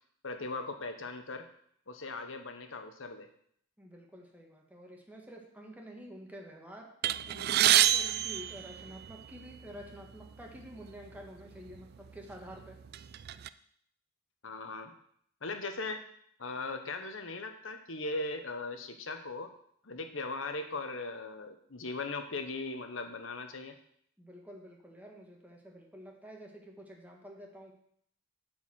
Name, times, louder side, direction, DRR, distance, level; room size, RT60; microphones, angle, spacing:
voice 1, 0.2-1.5 1.9-3.3 14.4-14.9 15.4-16.0 16.4-19.5 19.8-23.8, left 3 dB, 70° left, 6 dB, 1.1 m, -39 dB
voice 2, 3.8-6.9 7.3-12.8 24.2-27.7, equal, 10° right, 0 dB, 1.6 m, -49 dB
sound 1, 7.0-9.4 10.2-10.3 10.6-10.8 11.7-11.8 12.3-13.5, right 12 dB, 50° right, 0.3 m, -27 dB
8.2 x 4.8 x 7.4 m, 0.66 s
head